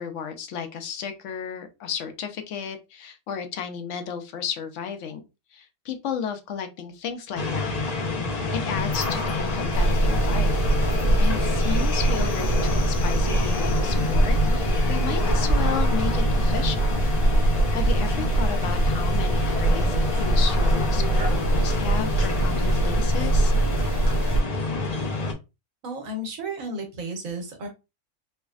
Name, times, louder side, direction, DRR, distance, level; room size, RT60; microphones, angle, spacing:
voice 1, 0.0-5.2 5.5-7.7 8.5-10.6 11.2-17.0 17.7-23.5, left 7 dB, 65° left, 7 dB, 0.9 m, -33 dB
sound 1, 7.4-25.3, left 3 dB, 45° left, 0.5 m, -28 dB
sound 2, 8.7-15.5, left 1 dB, 90° left, 1.2 m, -35 dB
sound 3, 9.7-24.4, right 2 dB, 35° right, 0.5 m, -23 dB
voice 2, 25.8-27.7, right 1 dB, 70° right, 3 dB, 1.3 m, -33 dB
4.6 x 2.2 x 2.4 m, 0.26 s
omnidirectional pair, 1.5 m